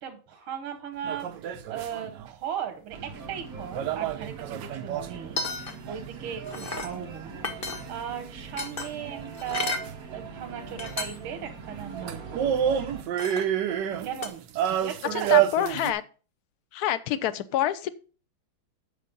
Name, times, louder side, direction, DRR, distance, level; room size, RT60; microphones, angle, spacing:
voice 1, 0.0-1.3 1.7-12.7 14.0-15.5, right 9 dB, 85° right, 4 dB, 1.9 m, -37 dB
sound 1, 1.0-2.3 3.7-5.4 9.9-10.0 12.1-15.9, right 10 dB, 70° right, 1.2 m, -27 dB
sound 2, 2.9-13.0, right 5 dB, 50° right, 1.4 m, -41 dB
sound 3, 5.2-6.0 6.3-6.9 7.4-8.1 8.6-9.9 10.5-10.6 10.8-11.3 11.8-11.9 13.2-13.6 14.2-14.3, left 3 dB, 35° left, 1.0 m, -33 dB
voice 2, 15.1-16.0 16.7-17.9, left 12 dB, 70° left, 13 dB, 0.9 m, -27 dB
8.5 x 5.6 x 5.2 m, 0.36 s
omnidirectional pair, 2.3 m